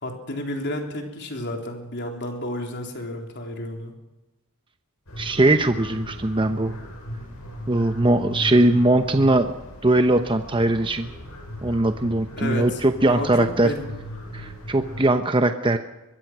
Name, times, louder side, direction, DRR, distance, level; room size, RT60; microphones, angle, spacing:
voice 1, 0.0-4.0 12.4-12.8 13.1-13.9, left 1 dB, 50° left, 3 dB, 3.8 m, -31 dB
sound 1, 5.1-15.1, equal, 80° left, 7.5 m, -38 dB
voice 2, 5.2-6.7 7.7-9.5 9.8-11.1 11.6-13.7 14.3-15.8, right 2 dB, 25° right, 7 dB, 0.9 m, -20 dB
23.5 x 21.5 x 6.2 m, 1.0 s
head